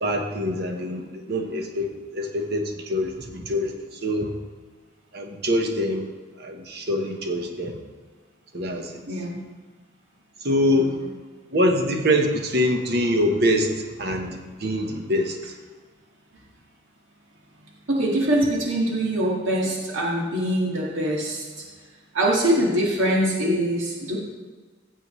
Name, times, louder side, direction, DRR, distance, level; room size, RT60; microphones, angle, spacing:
voice 1, 0.0-3.7 4.0-4.3 5.1-6.0 6.4-7.8 8.5-9.0 10.4-11.0 11.5-15.5, equal, 55° right, 4 dB, 1.1 m, -24 dB
voice 2, 9.1-9.4 10.7-11.1 17.9-21.7 22.1-24.2, right 1 dB, 85° right, -3 dB, 1.8 m, -23 dB
15.0 x 7.6 x 3.2 m, 1.4 s
head